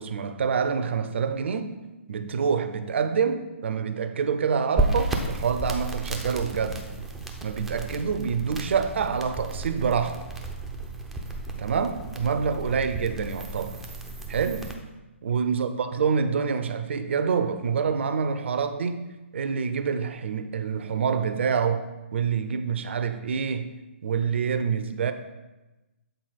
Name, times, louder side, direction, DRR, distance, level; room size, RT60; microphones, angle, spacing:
voice 1, 0.0-1.7 2.1-6.8 7.4-10.2 11.6-13.8 14.3-14.7 15.2-19.0 19.3-23.7 24.0-25.1, right 6 dB, 60° right, 9 dB, 0.6 m, -26 dB
sound 1, 4.8-14.7, right 2 dB, 5° right, 0.6 m, -33 dB
7.9 x 4.1 x 4.0 m, 1.1 s
figure-of-eight pair, 130°, 7 cm